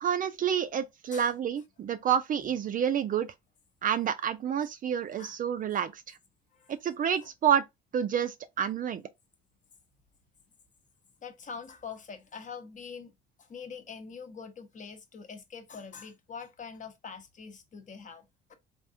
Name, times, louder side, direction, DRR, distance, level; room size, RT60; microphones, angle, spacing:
voice 1, 0.0-3.3 3.8-6.2 6.7-7.6 7.9-9.0, right 8 dB, 40° right, 0.4 m, -29 dB
voice 2, 11.2-13.1 13.4-18.5, left 5 dB, 35° left, 0.8 m, -44 dB
3.5 x 2.3 x 2.6 m
supercardioid pair, 75°, 21 cm